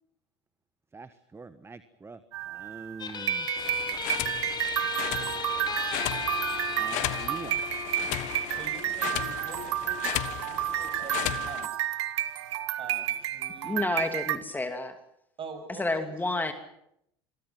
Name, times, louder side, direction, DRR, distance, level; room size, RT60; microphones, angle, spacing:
voice 1, 0.9-2.2 2.5-3.6 6.7-7.6, right 4 dB, 15° right, 12 dB, 1.4 m, -44 dB
sound 1, 2.3-14.4, right 13 dB, 80° right, 1.4 m, -31 dB
sound 2, 3.0-10.0, left 6 dB, 30° left, 4.9 m, -37 dB
sound 3, 3.6-11.7, left 17 dB, 55° left, 1.3 m, -36 dB
voice 2, 8.5-11.9 12.8-14.0 15.4-16.2, right 3 dB, 40° right, 9 dB, 7.3 m, -45 dB
voice 3, 13.6-15.0 15.8-16.5, left 2 dB, 10° left, 6 dB, 2.8 m, -30 dB
27.5 x 23.0 x 6.1 m, 0.75 s
hypercardioid pair, 80°, 15 cm